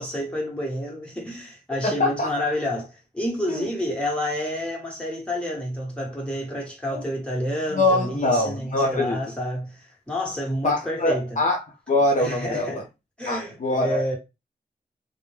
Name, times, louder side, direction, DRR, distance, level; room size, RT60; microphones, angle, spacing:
voice 1, 0.0-11.4 12.2-12.8 13.2-14.2, equal, 5° left, 1.1 m, -29 dB
voice 2, 1.8-2.3 3.5-3.7 6.9-7.0 7.7-9.2 10.6-12.8 13.3-14.2, left 2 dB, 50° left, 0.5 m, -23 dB
2.2 x 2.1 x 3.1 m
cardioid pair, 65°, 17 cm